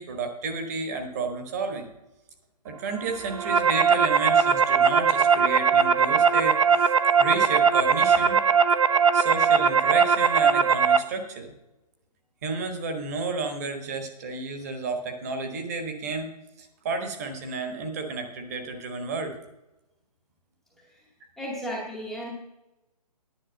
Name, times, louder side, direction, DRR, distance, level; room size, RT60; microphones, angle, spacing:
voice 1, 0.0-1.9 2.6-6.9 7.2-8.4 9.1-11.5 12.4-16.3 16.6-19.4, right 3 dB, 25° right, 5 dB, 1.3 m, -32 dB
sound 1, 3.1-11.0, right 6 dB, 50° right, 0.6 m, -20 dB
voice 2, 21.4-22.3, equal, ahead, -5 dB, 0.9 m, -34 dB
10.0 x 5.7 x 7.7 m, 0.94 s
hypercardioid pair, 165°, 20 cm